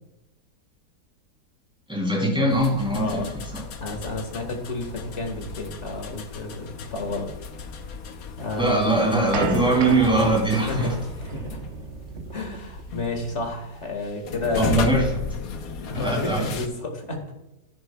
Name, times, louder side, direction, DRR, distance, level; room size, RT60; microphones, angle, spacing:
voice 1, 1.9-3.2 3.5-3.6 8.6-10.9 14.6-15.1 15.9-16.4, right 2 dB, 5° right, -1 dB, 3.0 m, -21 dB
sound 1, 2.5-16.7, left 5 dB, 65° left, 1.3 m, -35 dB
voice 2, 2.9-3.3 3.8-7.3 8.4-8.9 10.7-10.9 11.3-11.6 12.3-14.7 15.9-17.2, left 2 dB, 45° left, 3 dB, 1.9 m, -31 dB
sound 2, 8.6-13.5, right 5 dB, 55° right, 1.0 m, -33 dB
10.0 x 10.0 x 2.3 m, 0.96 s
omnidirectional pair, 1.7 m